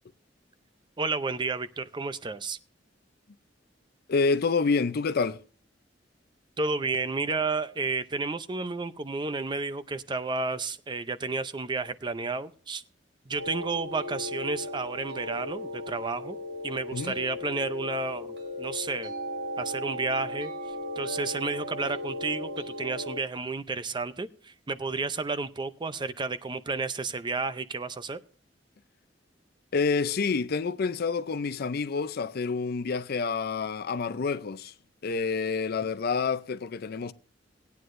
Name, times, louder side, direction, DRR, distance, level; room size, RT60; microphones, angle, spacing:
voice 1, 1.0-2.6 6.6-12.8 13.3-16.4 16.6-18.3 18.6-19.1 19.6-20.5 21.0-28.2, right 3 dB, 25° right, 0.5 m, -31 dB
voice 2, 4.1-5.4 16.9-17.2 29.7-34.7 35.0-37.1, left 4 dB, 55° left, 0.5 m, -28 dB
sound 1, 13.3-23.2, left 1 dB, 65° right, 3.8 m, -36 dB
19.0 x 9.4 x 2.6 m
head